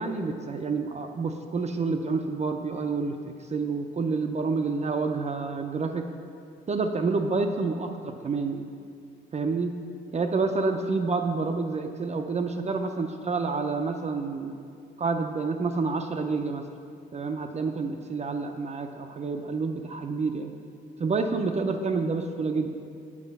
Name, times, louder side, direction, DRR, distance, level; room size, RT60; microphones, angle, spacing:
voice 1, 0.0-6.0 6.7-8.7 9.3-9.7 10.1-14.5 15.0-16.6 17.1-20.5 21.0-22.7, right 4 dB, 35° right, 5 dB, 0.5 m, -28 dB
7.3 x 4.9 x 6.7 m, 2.3 s
cardioid pair, 90°, 20 cm